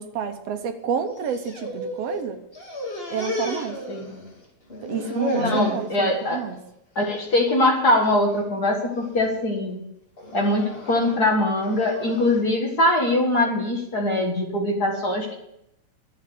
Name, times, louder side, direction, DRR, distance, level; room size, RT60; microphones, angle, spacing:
voice 1, 0.0-2.4 3.1-3.8 4.8-6.6, right 7 dB, 65° right, 7 dB, 1.9 m, -29 dB
sound 1, 1.2-2.2 2.5-4.4 4.7-5.8 6.3-6.7 7.0-7.2 8.0-8.4 8.9-9.3 10.2-12.4, left 1 dB, 20° left, 2.2 m, -31 dB
voice 2, 3.9-4.2 5.4-6.5 7.0-9.8 10.3-15.4, left 1 dB, 40° left, 0 dB, 1.8 m, -22 dB
11.5 x 8.0 x 7.7 m, 0.81 s
omnidirectional pair, 3.4 m